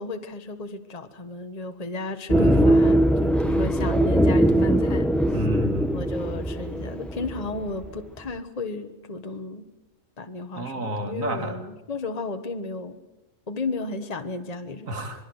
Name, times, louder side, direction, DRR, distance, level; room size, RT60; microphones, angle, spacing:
voice 1, 0.0-5.2 5.9-9.7 10.2-13.0 13.5-14.9, left 3 dB, 30° left, 7 dB, 1.4 m, -33 dB
sound 1, 2.3-7.9, right 1 dB, ahead, 0.8 m, -21 dB
voice 2, 2.3-2.6 5.3-5.9 10.5-11.6 14.9-15.3, equal, 75° right, 6 dB, 2.9 m, -30 dB
26.5 x 22.0 x 8.0 m, 0.96 s
omnidirectional pair, 1.4 m